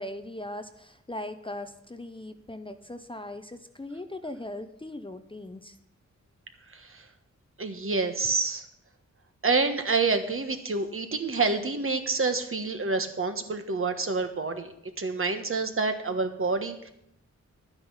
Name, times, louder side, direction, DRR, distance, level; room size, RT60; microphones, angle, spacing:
voice 1, 0.0-5.8, left 1 dB, 15° left, 9 dB, 0.7 m, -39 dB
voice 2, 6.7-7.1 7.6-8.6 9.4-16.9, right 4 dB, 45° right, 7 dB, 1.4 m, -28 dB
11.5 x 9.6 x 5.7 m, 0.78 s
wide cardioid pair, 85°, 29 cm